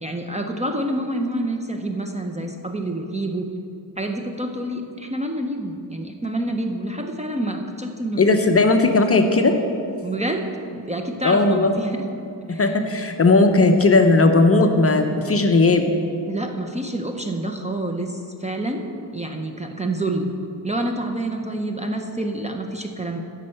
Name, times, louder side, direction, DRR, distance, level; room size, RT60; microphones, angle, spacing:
voice 1, 0.0-3.5 4.0-8.2 10.0-10.4 10.7-12.0 12.5-12.7 16.3-20.3 20.6-23.2, right 1 dB, 15° right, 3 dB, 0.6 m, -27 dB
voice 2, 8.2-9.6 11.2-11.7 12.6-15.9, left 3 dB, 35° left, 6 dB, 0.6 m, -16 dB
9.9 x 5.5 x 7.6 m, 2.6 s
wide cardioid pair, 135°, 43 cm